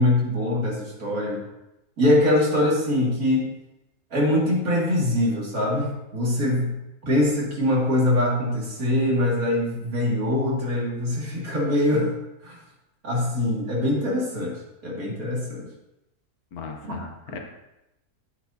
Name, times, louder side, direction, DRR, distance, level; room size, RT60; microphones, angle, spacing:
voice 1, 0.0-1.4 2.0-3.5 4.1-6.7 7.0-12.1 12.4-12.6 13.0-15.7 16.9-17.4, left 1 dB, 70° right, -4 dB, 2.7 m, -23 dB
voice 2, 16.5-17.4, left 5 dB, 80° left, 3 dB, 1.5 m, -37 dB
11.0 x 8.0 x 2.7 m, 0.92 s
omnidirectional pair, 1.6 m